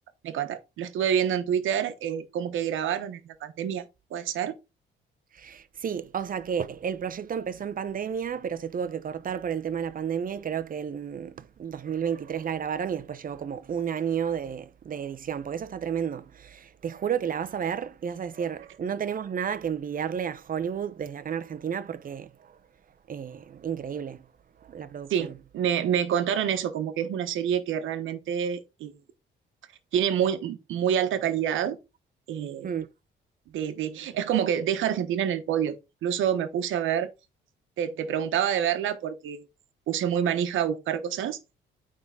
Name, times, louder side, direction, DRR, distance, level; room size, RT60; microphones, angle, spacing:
voice 1, 0.2-3.8 4.1-4.5 25.1-28.9 29.9-31.8 32.3-32.7 33.5-35.7 36.0-37.1 37.8-39.4 39.9-41.4, right 9 dB, 80° right, 1.2 m, -27 dB
voice 2, 5.3-22.5 23.1-24.2 24.7-25.3 32.6-32.9, right 8 dB, 45° right, 0.8 m, -32 dB
9.3 x 3.8 x 3.8 m
cardioid pair, 90°, 20 cm